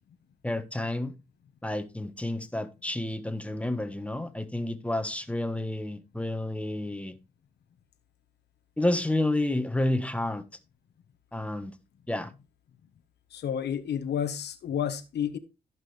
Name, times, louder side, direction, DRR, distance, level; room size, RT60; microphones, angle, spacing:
voice 1, 0.4-1.2 1.6-7.2 8.8-10.4 11.3-11.7 12.1-12.3, left 1 dB, 5° left, 1.3 m, -30 dB
voice 2, 13.3-15.4, left 8 dB, 85° left, 1.2 m, -30 dB
14.5 x 6.1 x 3.3 m
cardioid pair, 75°, 17 cm